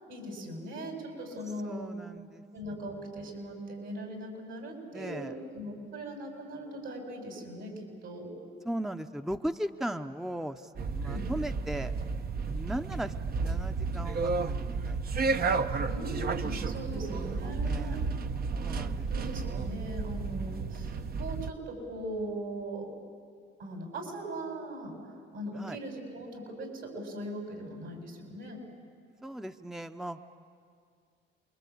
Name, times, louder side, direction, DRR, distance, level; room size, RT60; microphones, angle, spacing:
voice 1, 0.0-2.0 2.5-8.3 11.0-11.3 15.9-18.0 18.7-22.9 23.6-25.0 25.3-28.6, right 1 dB, 80° right, 2 dB, 7.2 m, -40 dB
voice 2, 1.6-2.4 4.9-5.3 8.6-11.9 12.5-13.1 13.4-15.0 17.6-18.1 18.6-19.1 25.6-25.8 29.2-30.2, right 1 dB, ahead, 7 dB, 0.7 m, -37 dB
sound 1, 10.8-21.5, right 4 dB, 50° right, 0.9 m, -32 dB
28.5 x 23.0 x 8.6 m, 2.2 s
cardioid pair, 90°, 20 cm